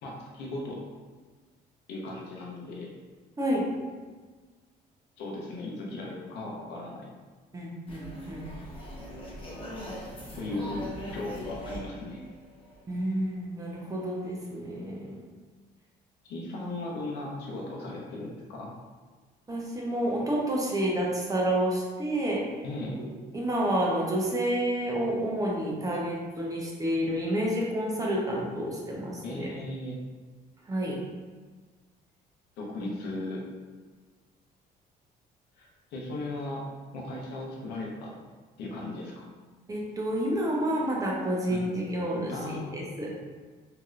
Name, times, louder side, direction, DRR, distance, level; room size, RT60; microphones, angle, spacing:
voice 1, 0.0-0.8 1.9-2.9 5.2-7.1 10.4-12.2 16.2-18.7 22.6-23.0 29.2-30.0 32.6-33.5 35.6-36.7 36.9-38.1 38.6-39.3 41.5-41.6 42.3-42.8, left 2 dB, 80° left, -2 dB, 0.8 m, -37 dB
voice 2, 7.5-8.4 10.3-10.5 12.9-15.2 19.5-22.4 23.0-23.1 23.3-29.5 30.7-31.0 32.8-32.9 39.7-43.1, right 1 dB, 20° right, -3 dB, 0.7 m, -29 dB
sound 1, 7.9-13.0, equal, 30° left, 0.8 m, -41 dB
3.1 x 2.8 x 2.4 m, 1.4 s
cardioid pair, 110°, 17 cm